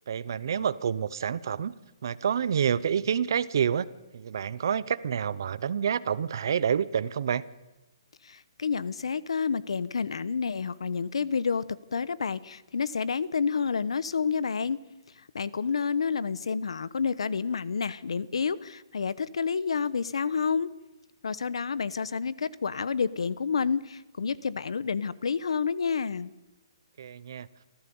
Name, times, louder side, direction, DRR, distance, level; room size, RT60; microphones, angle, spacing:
voice 1, 0.1-1.7 2.0-3.9 4.1-7.4 27.0-27.5, right 8 dB, 45° right, 18 dB, 0.7 m, -28 dB
voice 2, 8.2-14.8 15.3-20.7 21.2-26.3, left 5 dB, 85° left, 18 dB, 1.0 m, -29 dB
26.5 x 14.5 x 7.1 m, 1.1 s
hypercardioid pair, 180°, 3 cm